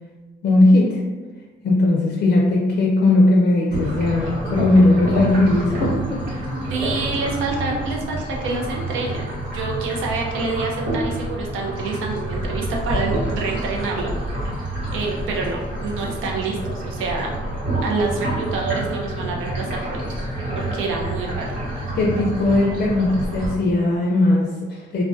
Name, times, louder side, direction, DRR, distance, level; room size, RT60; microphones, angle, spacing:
voice 1, 0.4-1.0 1.6-6.2 6.5-6.7 21.9-25.0, left 2 dB, 50° left, -2 dB, 0.4 m, -18 dB
sound 1, 3.7-23.5, right 1 dB, 70° right, 1.1 m, -28 dB
voice 2, 6.7-14.1 14.9-17.4 17.8-20.0 20.5-21.5, right 3 dB, 90° right, -1 dB, 0.5 m, -27 dB
2.2 x 2.2 x 2.5 m, 1.4 s
cardioid pair, 90°, 20 cm